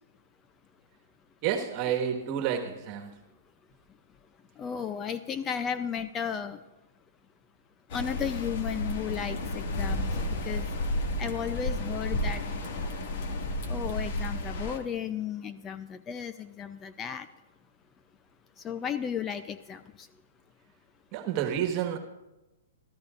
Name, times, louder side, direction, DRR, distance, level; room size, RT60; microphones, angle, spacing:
voice 1, 1.4-3.1 21.1-22.0, right 9 dB, 40° right, 4 dB, 1.6 m, -29 dB
voice 2, 4.6-6.6 7.9-10.7 11.2-12.4 13.7-17.3 18.6-20.1, left 8 dB, 25° left, 11 dB, 0.6 m, -34 dB
sound 1, 7.9-14.8, left 1 dB, 55° left, 1.9 m, -32 dB
24.5 x 13.5 x 2.5 m, 1.0 s
hypercardioid pair, 125°, 0 cm